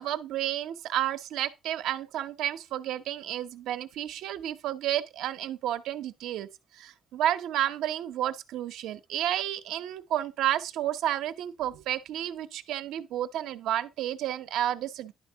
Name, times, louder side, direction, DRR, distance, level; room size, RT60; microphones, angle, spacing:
voice 1, 0.0-6.5 6.7-15.1, right 12 dB, 90° right, 0.8 m, -31 dB
11.0 x 3.7 x 5.6 m
cardioid pair, 90°, 0 cm